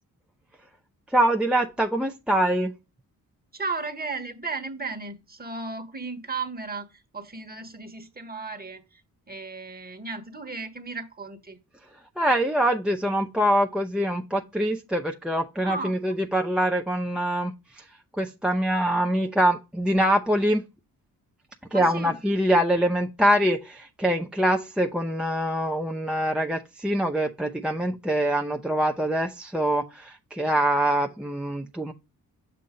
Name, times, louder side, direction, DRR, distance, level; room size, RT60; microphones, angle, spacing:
voice 1, 1.1-2.7 12.2-17.8 18.2-20.6 21.7-31.9, right 1 dB, 5° right, 0.6 m, -24 dB
voice 2, 3.5-9.0 9.3-11.6 15.6-16.0 21.7-22.1, right 3 dB, 25° right, 1.3 m, -35 dB
7.1 x 2.7 x 5.1 m
cardioid pair, 80°, 36 cm